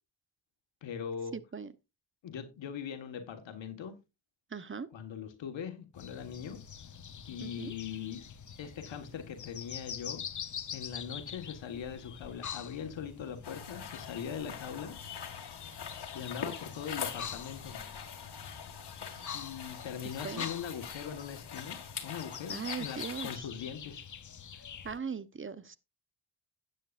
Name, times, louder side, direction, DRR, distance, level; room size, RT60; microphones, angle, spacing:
voice 1, 0.8-1.4 2.2-4.0 4.9-6.6 7.3-8.2 8.6-10.2 10.7-15.0 16.1-17.8 19.3-24.1, left 7 dB, 85° left, 1.6 m, -41 dB
voice 2, 1.3-1.7 4.5-4.9 7.4-7.7 20.2-20.4 22.5-23.3 24.8-25.8, right 6 dB, 25° right, 0.9 m, -39 dB
sound 1, 5.9-25.0, left 8 dB, 40° left, 0.9 m, -45 dB
sound 2, 13.4-23.4, left 7 dB, 60° left, 2.3 m, -43 dB
12.5 x 9.4 x 2.5 m
cardioid pair, 70°, 44 cm